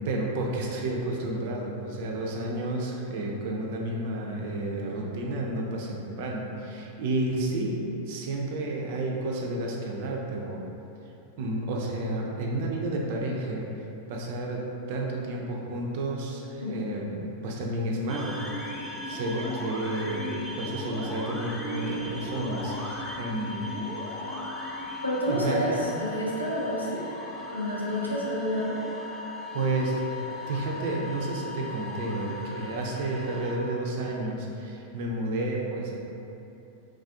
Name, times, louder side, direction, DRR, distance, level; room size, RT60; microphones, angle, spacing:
voice 1, 0.0-10.6 11.4-13.7 14.1-18.4 19.1-23.7 25.3-25.8 29.5-30.0 30.5-36.0, right 2 dB, 50° right, -1 dB, 0.4 m, -31 dB
sound 1, 18.1-33.6, left 1 dB, 15° left, 0.4 m, -37 dB
voice 2, 25.0-27.1 27.5-28.8, equal, 85° left, -6 dB, 0.5 m, -29 dB
3.3 x 2.4 x 2.4 m, 2.8 s
figure-of-eight pair, 90°, 0 cm